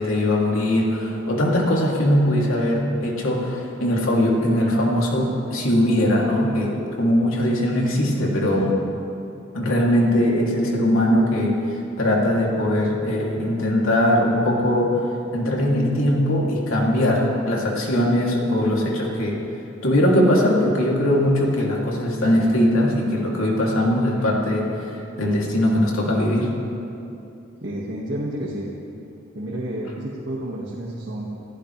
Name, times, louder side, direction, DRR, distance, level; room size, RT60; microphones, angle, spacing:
voice 1, 0.0-8.7 9.5-19.4 19.8-26.5, left 1 dB, 90° left, -2 dB, 2.9 m, -20 dB
voice 2, 27.6-28.7 29.4-31.3, right 1 dB, 55° right, -5 dB, 1.9 m, -30 dB
28.0 x 15.0 x 3.4 m, 2.7 s
head